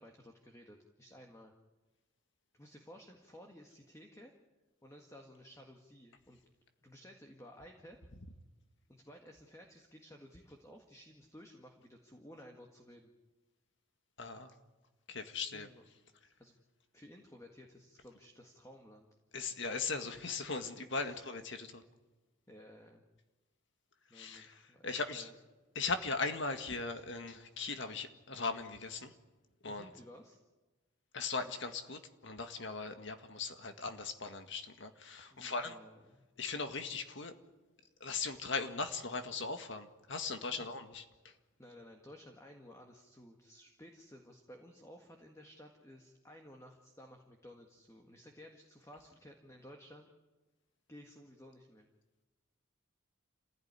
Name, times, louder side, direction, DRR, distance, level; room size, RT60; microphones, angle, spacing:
voice 1, 0.0-1.5 2.5-4.3 4.8-6.4 6.8-8.0 8.9-13.1 15.5-15.8 16.4-16.6 16.9-19.1 21.0-21.3 22.5-23.0 24.1-25.3 29.7-30.4 35.3-36.3 40.5-40.7 41.6-50.1 50.9-51.9, equal, 15° left, 2 dB, 1.8 m, -55 dB
voice 2, 14.2-14.5 15.1-15.7 19.3-21.8 24.1-25.3 25.8-29.1 29.6-29.9 31.1-35.8 36.4-37.3 38.0-41.3, left 4 dB, 60° left, 7 dB, 1.9 m, -39 dB
27.5 x 16.0 x 9.7 m, 1.2 s
head